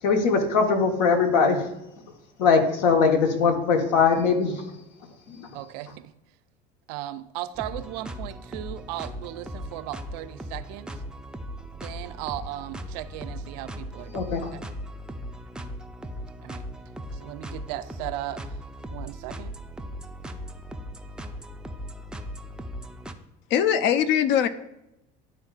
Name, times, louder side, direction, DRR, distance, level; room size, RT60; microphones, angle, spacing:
voice 1, 0.0-1.7 2.4-4.7 5.3-5.6 14.1-14.5, left 5 dB, 80° left, 4 dB, 1.2 m, -21 dB
voice 2, 5.5-6.1 6.9-10.9 11.8-14.6 16.4-16.6 17.2-18.5 18.9-19.5, right 14 dB, 80° right, 12 dB, 0.4 m, -36 dB
sound 1, 7.6-23.1, equal, 5° right, 0.4 m, -38 dB
voice 3, 23.5-24.5, left 9 dB, 60° left, 12 dB, 0.6 m, -21 dB
11.0 x 3.7 x 2.4 m, 0.88 s
supercardioid pair, 105°, 21 cm